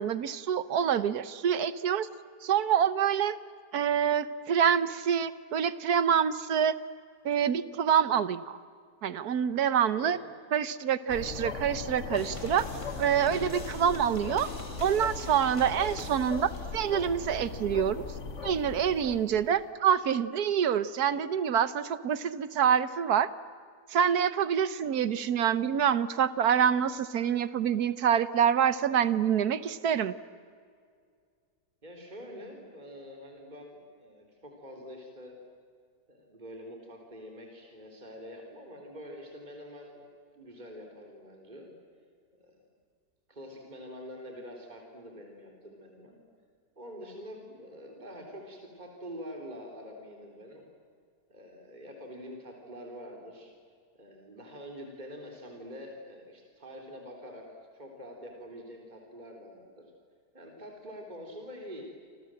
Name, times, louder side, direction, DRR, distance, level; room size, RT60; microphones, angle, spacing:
voice 1, 0.0-2.1 2.4-3.4 3.7-6.8 7.2-8.6 9.0-10.2 10.5-12.7 13.0-14.5 14.8-18.0 18.4-23.3 23.9-30.1, right 8 dB, 65° right, 15 dB, 1.4 m, -26 dB
voice 2, 10.0-10.4 31.8-35.4 36.1-40.0 40.3-41.7 42.4-42.6 43.3-46.2 46.8-50.6 51.3-53.5 53.9-57.5 57.7-59.8 60.3-61.8, equal, 25° right, 2 dB, 3.8 m, -46 dB
sound 1, 11.1-19.6, left 5 dB, 45° left, 1.6 m, -38 dB
sound 2, 12.1-17.1, equal, 15° left, 4.6 m, -47 dB
29.5 x 26.0 x 7.7 m, 2.2 s
omnidirectional pair, 1.8 m